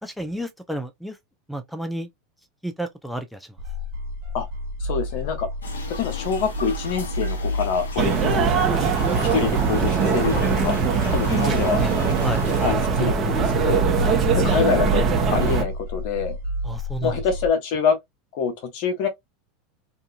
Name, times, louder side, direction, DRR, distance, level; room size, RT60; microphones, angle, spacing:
voice 1, 0.0-1.2 1.5-2.1 2.6-3.5 11.5-11.9 12.2-12.5 16.6-17.1, right 1 dB, ahead, 0.5 m, -31 dB
sound 1, 3.6-17.5, equal, 60° right, 1.1 m, -30 dB
voice 2, 4.8-5.5 5.9-8.5 8.9-10.8 11.1-11.8 12.6-13.9 14.3-16.4 17.0-18.0 18.3-19.1, left 6 dB, 60° left, 0.9 m, -26 dB
sound 2, 5.6-12.8, left 3 dB, 90° left, 0.8 m, -37 dB
sound 3, 8.0-15.6, right 5 dB, 35° right, 0.9 m, -21 dB
2.7 x 2.5 x 2.3 m
hypercardioid pair, 90°, 0 cm